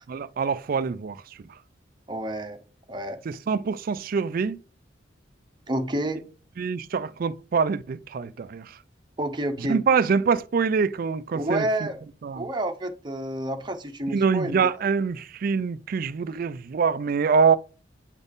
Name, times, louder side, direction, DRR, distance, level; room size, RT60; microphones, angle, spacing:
voice 1, 0.1-1.2 3.3-4.6 6.6-8.8 9.7-11.7 12.2-12.5 14.1-17.6, right 5 dB, 45° right, 0.3 m, -24 dB
voice 2, 2.1-2.6 2.9-3.2 5.7-6.3 9.2-9.8 11.3-12.0 12.3-14.7, right 1 dB, 25° right, 0.8 m, -29 dB
8.9 x 4.0 x 3.5 m
head